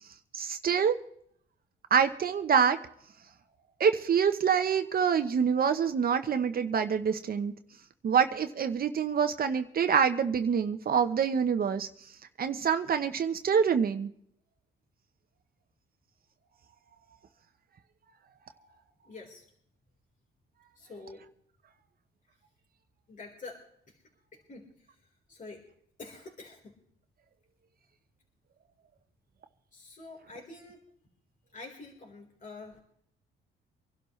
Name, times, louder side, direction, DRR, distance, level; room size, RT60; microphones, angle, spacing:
voice 1, 0.3-1.0 1.9-2.8 3.8-7.5 8.0-11.9 12.4-14.1, right 7 dB, 50° right, 8 dB, 0.9 m, -26 dB
voice 2, 19.0-19.5 20.8-21.2 23.1-24.0 24.3-25.0 25.3-25.6 26.0-26.8 29.7-30.8 31.5-32.8, left 3 dB, 40° left, -1 dB, 4.2 m, -47 dB
25.5 x 12.0 x 3.2 m, 0.68 s
cardioid pair, 90°, 20 cm